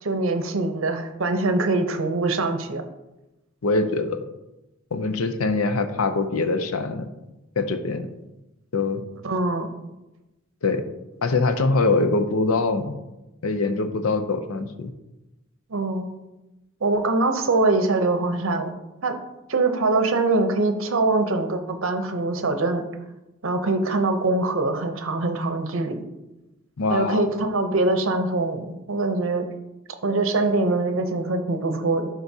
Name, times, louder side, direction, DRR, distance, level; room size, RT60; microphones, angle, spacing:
voice 1, 0.0-2.8 9.2-9.7 15.7-16.1 16.8-18.7 19.0-19.2 19.5-22.9 23.4-26.0 26.9-29.4 30.0-32.1, right 2 dB, 65° right, 7 dB, 0.7 m, -23 dB
voice 2, 3.6-4.2 4.9-7.1 7.6-8.1 8.7-9.0 10.6-10.8 11.2-13.0 13.4-14.9 26.8-27.2, left 3 dB, 75° left, 9 dB, 0.6 m, -23 dB
10.5 x 3.9 x 2.8 m, 0.97 s
head